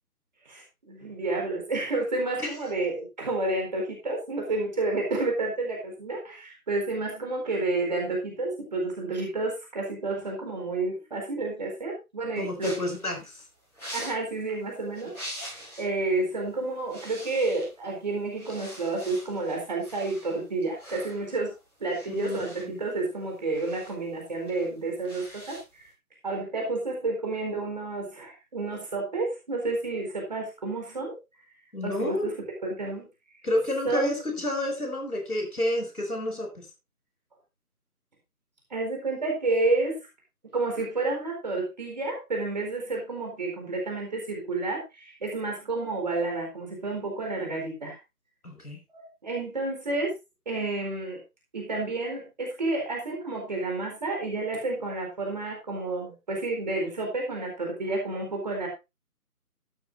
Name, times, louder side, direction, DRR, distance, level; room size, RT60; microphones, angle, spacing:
voice 1, 0.4-12.8 13.9-15.2 15.8-21.5 21.8-25.6 26.2-31.1 31.8-32.4 32.6-33.1 33.8-34.1 38.7-40.0 40.5-48.0 48.9-50.1 50.5-51.2 51.5-58.7, right 2 dB, 30° right, 1 dB, 4.2 m, -30 dB
voice 2, 12.4-13.4 22.1-22.8 31.7-32.3 33.4-36.7 48.4-48.8, left 1 dB, 75° left, 3 dB, 6.2 m, -30 dB
sound 1, 12.6-15.9 16.2-16.5 16.8-17.9 18.3-25.9, equal, 5° left, 6.3 m, -44 dB
13.0 x 12.5 x 2.7 m, 0.25 s
figure-of-eight pair, 160°, 45 cm